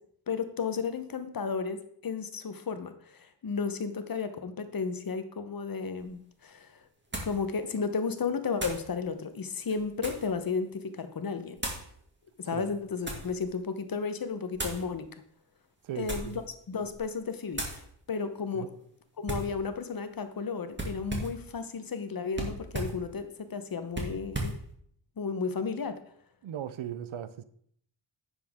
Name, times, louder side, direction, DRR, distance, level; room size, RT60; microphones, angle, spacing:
voice 1, 0.3-6.8 7.2-11.6 12.4-15.1 16.0-16.4 16.7-18.7 19.2-24.5 25.2-26.0, left 5 dB, 45° left, 1.1 m, -33 dB
sound 1, 6.0-6.1 7.1-7.4 8.6-8.9 9.6-10.3 11.6-11.9 12.6-13.3 14.5-14.9 15.9-16.4 16.8-17.1 17.5-17.8 19.3-19.6 20.7-21.4 22.3-23.0 23.9-24.6, right 1 dB, 20° right, 2.4 m, -36 dB
voice 2, 15.8-16.4 18.5-18.7 26.4-27.4, right 10 dB, 75° right, 0.8 m, -37 dB
9.7 x 7.1 x 3.7 m
cardioid pair, 80°, 48 cm